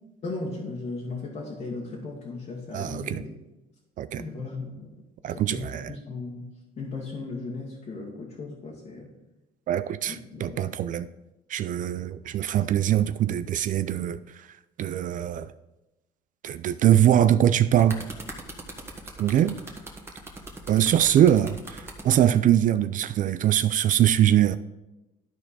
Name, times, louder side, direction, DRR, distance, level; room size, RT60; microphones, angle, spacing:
voice 1, 0.2-3.3 4.1-5.0 5.2-9.1 10.1-10.7, left 3 dB, 45° left, 1.6 m, -37 dB
voice 2, 2.7-3.2 4.0-4.2 5.2-5.8 9.7-10.2 10.4-11.1 11.5-14.2 14.8-15.5 16.4-18.0 19.2-19.5 20.7-24.6, right 11 dB, 50° right, 0.4 m, -22 dB
sound 1, 17.5-22.2 23.1-23.3, right 2 dB, 15° right, 1.7 m, -40 dB
12.5 x 4.4 x 4.1 m
cardioid pair, 110°, 17 cm